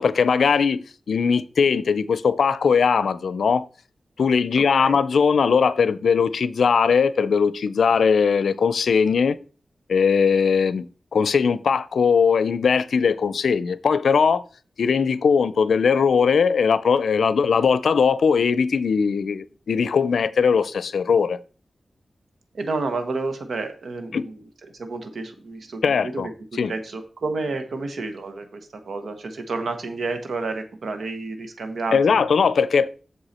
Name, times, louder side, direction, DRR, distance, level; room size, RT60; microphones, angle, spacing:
voice 1, 0.0-3.7 4.2-9.4 9.9-10.9 11.1-14.4 14.8-21.4 24.1-24.3 25.8-26.3 26.6-26.7 31.9-32.9, left 6 dB, 90° left, 0.5 m, -20 dB
voice 2, 4.5-5.0 22.5-24.4 24.7-32.2, right 3 dB, 80° right, 1.2 m, -30 dB
8.0 x 6.6 x 4.3 m
wide cardioid pair, 75°, 0 cm